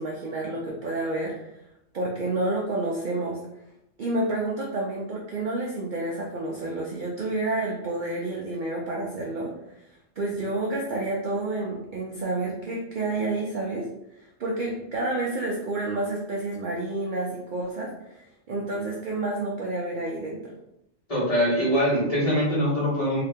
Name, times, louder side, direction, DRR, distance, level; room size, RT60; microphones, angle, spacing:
voice 1, 0.0-1.5 1.9-3.4 4.0-9.5 10.2-13.9 14.2-20.5, right 2 dB, 55° right, -2 dB, 0.5 m, -29 dB
voice 2, 21.1-23.2, equal, 30° left, -9 dB, 1.4 m, -23 dB
2.8 x 2.7 x 3.4 m, 0.84 s
omnidirectional pair, 1.3 m